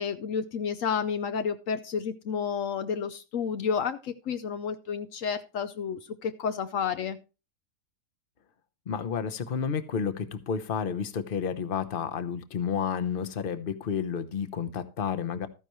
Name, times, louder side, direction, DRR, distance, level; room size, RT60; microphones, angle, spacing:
voice 1, 0.0-7.2, left 6 dB, 70° left, 10 dB, 1.1 m, -31 dB
voice 2, 8.9-15.5, left 7 dB, 45° left, 10 dB, 1.0 m, -31 dB
13.5 x 10.0 x 3.1 m, 0.32 s
omnidirectional pair, 1.4 m